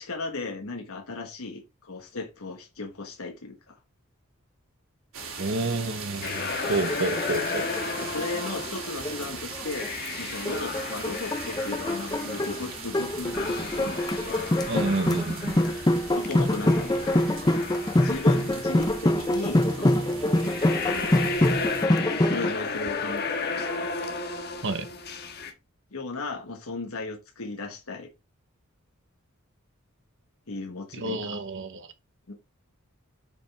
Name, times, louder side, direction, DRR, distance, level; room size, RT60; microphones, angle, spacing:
voice 1, 0.0-3.8 8.0-14.4 16.1-16.9 18.0-20.1 20.9-21.5 22.2-23.9 25.9-28.1 30.5-31.4 32.3-32.4, left 3 dB, 80° left, 1.3 m, -36 dB
sound 1, 5.1-21.8, right 5 dB, 75° right, 2.5 m, -40 dB
voice 2, 5.4-7.7 14.7-15.6 24.6-24.9 30.9-31.9, right 2 dB, 60° right, 1.1 m, -29 dB
sound 2, 6.2-25.5, left 4 dB, 50° left, 1.5 m, -34 dB
sound 3, 6.5-9.9 10.5-22.5, left 1 dB, 20° left, 0.6 m, -25 dB
8.9 x 5.2 x 3.4 m
head